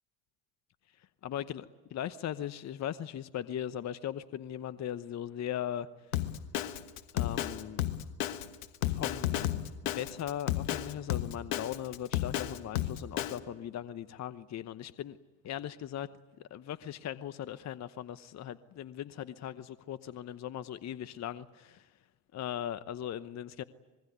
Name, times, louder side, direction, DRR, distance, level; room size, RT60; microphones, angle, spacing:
voice 1, 1.0-5.9 7.1-7.9 8.8-15.2 15.4-16.1 16.4-21.9 22.3-23.6, left 10 dB, 45° left, 14 dB, 1.0 m, -39 dB
Drum kit, 6.1-13.4, left 13 dB, 90° left, 1.4 m, -32 dB
26.0 x 21.5 x 9.4 m, 1.3 s
hypercardioid pair, 75°, 39 cm